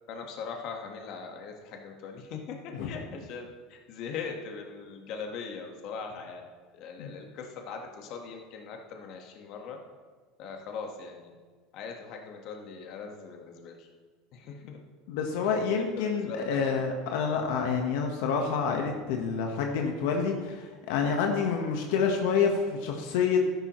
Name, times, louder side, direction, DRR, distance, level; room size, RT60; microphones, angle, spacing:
voice 1, 0.1-6.4 6.7-9.8 10.4-11.3 11.7-13.9 14.3-14.8 15.4-15.5 16.0-16.8, left 5 dB, 50° left, 2 dB, 1.5 m, -40 dB
voice 2, 15.1-23.4, left 6 dB, 75° left, 2 dB, 1.3 m, -28 dB
13.0 x 11.0 x 3.2 m, 1.5 s
supercardioid pair, 145°, 0 cm